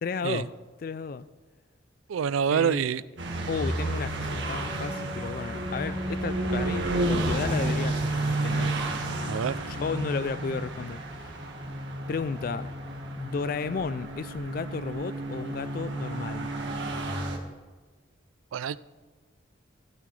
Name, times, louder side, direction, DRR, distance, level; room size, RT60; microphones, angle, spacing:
voice 1, 0.0-0.5 0.8-1.3 2.5-2.9 3.5-8.1 8.4-8.7 9.6-11.0 12.1-12.7 13.2-16.5, left 5 dB, 45° left, 0.3 m, -33 dB
voice 2, 2.1-3.0 9.3-9.6 18.5-18.8, right 7 dB, 85° right, 0.4 m, -26 dB
sound 1, 3.2-17.4, right 1 dB, 65° right, 1.7 m, -31 dB
16.0 x 12.0 x 3.3 m
head